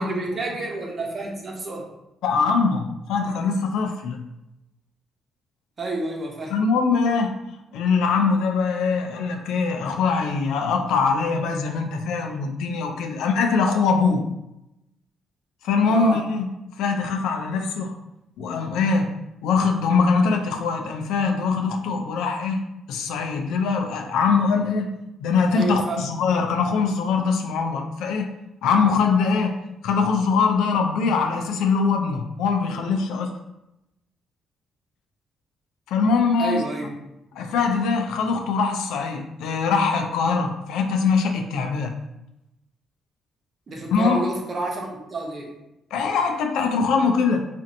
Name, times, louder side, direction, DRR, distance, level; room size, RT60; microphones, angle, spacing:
voice 1, 0.0-1.9 5.8-6.5 15.9-16.2 25.5-26.0 36.4-37.0 43.7-45.5, right 2 dB, 45° right, 0 dB, 0.9 m, -29 dB
voice 2, 2.2-4.2 6.5-7.3 7.7-14.2 15.6-16.5 16.8-17.9 18.4-19.1 19.4-22.6 22.9-24.9 25.2-28.3 28.6-29.6 29.8-33.3 35.9-36.6 37.3-41.9 43.9-44.2 45.9-47.4, left 5 dB, 90° left, 4 dB, 0.4 m, -22 dB
4.1 x 2.6 x 2.6 m, 0.89 s
cardioid pair, 90°, 0 cm